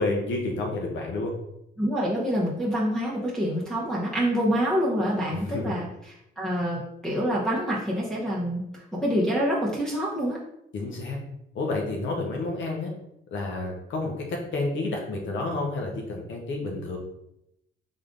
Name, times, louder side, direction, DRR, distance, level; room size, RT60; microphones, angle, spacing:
voice 1, 0.0-1.3 5.3-5.8 10.7-11.2 11.5-12.9 13.3-17.0, left 2 dB, 70° left, 0 dB, 1.0 m, -30 dB
voice 2, 1.8-5.9 6.4-10.4, equal, 5° left, -7 dB, 1.2 m, -26 dB
3.8 x 3.4 x 3.8 m, 0.81 s
cardioid pair, 90°, 20 cm